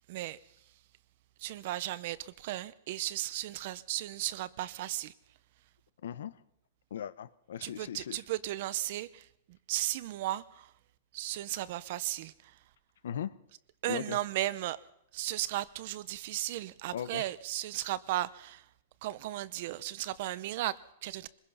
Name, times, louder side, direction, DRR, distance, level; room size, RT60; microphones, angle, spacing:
voice 1, 0.1-0.4 1.4-5.1 7.6-10.7 11.1-12.6 13.8-14.8 15.1-18.6 19.0-21.3, right 15 dB, 45° right, 0.7 m, -35 dB
voice 2, 6.0-6.4 6.9-8.2 13.0-13.4 13.9-14.2 16.9-17.2, left 9 dB, 80° left, 1.0 m, -38 dB
24.0 x 21.0 x 5.7 m
supercardioid pair, 170°, 0 cm